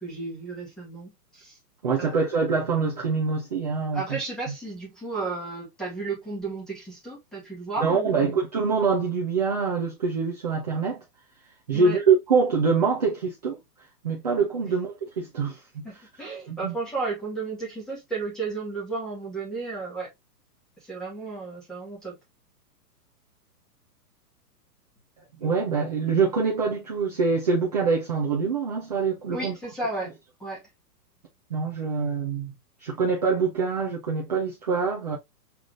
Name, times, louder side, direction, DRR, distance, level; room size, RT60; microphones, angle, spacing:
voice 1, 0.0-1.6 2.0-2.2 3.9-8.4 11.7-12.0 14.6-14.7 15.8-20.1 20.8-22.1 29.3-30.1 30.4-30.6, right 3 dB, ahead, 1.2 m, -33 dB
voice 2, 1.8-4.2 4.5-4.6 7.8-11.0 11.7-13.6 14.0-15.9 16.5-16.7 25.4-29.6 31.5-32.5 32.8-35.2, right 5 dB, 25° right, 0.6 m, -25 dB
5.8 x 3.3 x 2.4 m
hypercardioid pair, 170°, 48 cm